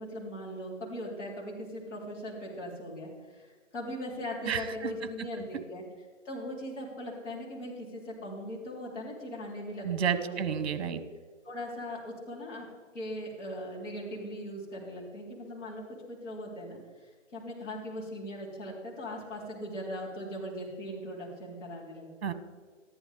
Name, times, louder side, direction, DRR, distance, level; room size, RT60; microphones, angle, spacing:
voice 1, 0.0-5.8 6.2-10.5 10.8-10.9 11.4-12.7 12.9-22.3, equal, 70° left, -4 dB, 3.8 m, -39 dB
voice 2, 4.4-4.9 5.3-5.4 9.8-11.0 22.2-22.3, right 8 dB, 55° right, 12 dB, 1.1 m, -31 dB
14.0 x 10.5 x 3.7 m, 1.5 s
hypercardioid pair, 165°, 38 cm